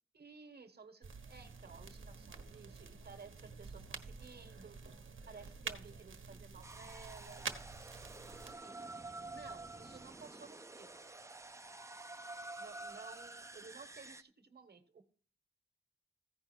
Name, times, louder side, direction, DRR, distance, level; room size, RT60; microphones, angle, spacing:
voice 1, 0.1-5.0 5.3-7.5 8.1-8.8 9.3-11.1 12.6-15.0, right 5 dB, 55° right, 9 dB, 1.3 m, -55 dB
sound 1, 1.0-8.5, right 5 dB, 75° right, 1.2 m, -48 dB
sound 2, 6.6-14.2, right 2 dB, 15° right, 0.4 m, -49 dB
15.5 x 5.2 x 4.4 m, 0.41 s
wide cardioid pair, 150°, 20 cm